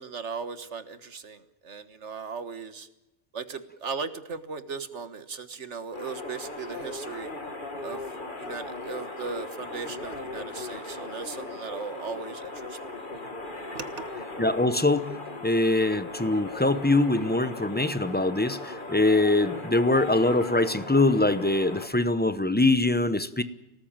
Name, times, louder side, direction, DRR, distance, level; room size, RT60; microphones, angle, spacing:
voice 1, 0.0-2.9 3.3-7.3 7.8-12.8 13.1-13.3 13.8-14.0, right 5 dB, 90° right, 11 dB, 1.8 m, -37 dB
sound 1, 5.9-21.9, left 2 dB, 45° left, 2.4 m, -38 dB
voice 2, 14.4-15.2 15.4-23.4, left 2 dB, 10° left, 12 dB, 0.9 m, -23 dB
24.5 x 18.5 x 8.9 m, 0.99 s
omnidirectional pair, 1.2 m